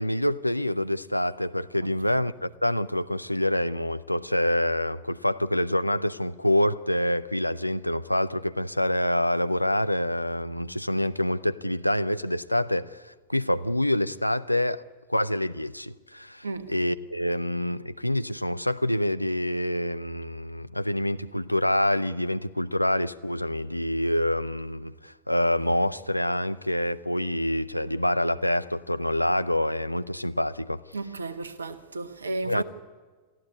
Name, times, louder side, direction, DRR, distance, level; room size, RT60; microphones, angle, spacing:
voice 1, 0.0-14.8 15.1-30.8 32.4-32.6, left 1 dB, 90° left, 0.6 m, -26 dB
voice 2, 30.9-32.6, right 3 dB, 75° right, 1.4 m, -33 dB
23.5 x 15.0 x 9.5 m
figure-of-eight pair, 90°, 0 cm